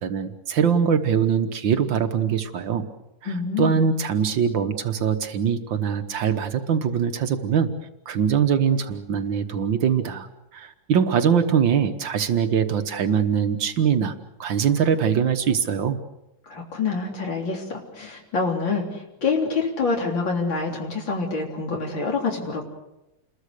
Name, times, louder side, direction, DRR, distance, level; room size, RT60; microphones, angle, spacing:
voice 1, 0.0-2.8 3.6-7.7 8.1-10.3 10.5-14.1 14.4-16.0, right 7 dB, 80° right, 8 dB, 2.0 m, -22 dB
voice 2, 3.2-3.9 16.5-17.6 17.9-22.7, left 4 dB, 80° left, 0 dB, 4.4 m, -26 dB
29.0 x 21.5 x 6.7 m, 0.94 s
omnidirectional pair, 2.1 m